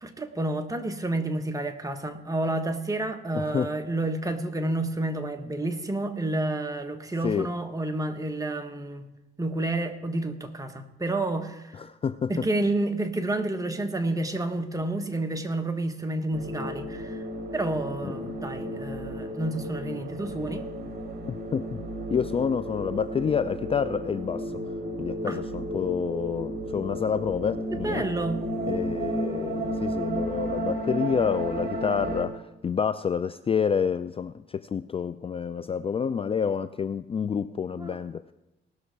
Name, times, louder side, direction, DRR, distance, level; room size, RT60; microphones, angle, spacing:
voice 1, 0.0-9.1 9.4-11.8 12.3-17.2 17.5-20.7 25.3-25.4 27.8-28.4 37.8-38.0, right 2 dB, 15° right, 1.3 m, -30 dB
voice 2, 3.3-3.7 7.2-7.5 11.7-12.3 18.0-18.1 21.5-21.8 22.1-24.6 25.0-28.0 28.7-38.2, left 7 dB, 30° left, 0.3 m, -28 dB
sound 1, 16.3-32.2, right 1 dB, 55° right, 1.9 m, -33 dB
18.5 x 6.3 x 4.6 m
cardioid pair, 90°, 20 cm